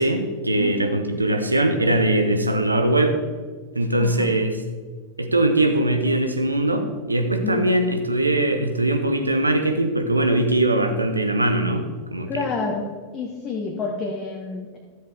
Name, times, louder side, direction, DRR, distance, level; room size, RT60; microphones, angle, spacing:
voice 1, 0.0-3.2 3.7-4.6 5.2-12.4, right 1 dB, 85° right, 6 dB, 0.9 m, -21 dB
voice 2, 0.6-1.1 4.0-4.3 7.4-7.7 12.3-14.8, left 4 dB, 30° left, 0 dB, 1.1 m, -29 dB
12.5 x 7.7 x 3.5 m, 1.5 s
figure-of-eight pair, 90°, 0 cm